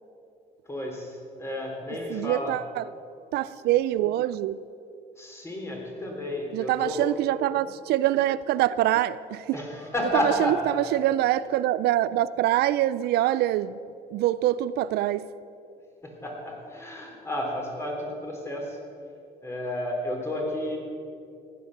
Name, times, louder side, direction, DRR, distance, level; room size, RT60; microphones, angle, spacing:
voice 1, 0.7-2.5 5.2-7.4 9.5-10.8 16.0-18.8 19.4-20.8, left 1 dB, 15° left, 3.6 m, -31 dB
voice 2, 2.1-2.9 3.3-4.6 6.5-9.6 10.1-13.8 14.1-15.3, right 14 dB, 75° right, 0.4 m, -25 dB
15.0 x 10.0 x 6.6 m
cardioid pair, 110°, 17 cm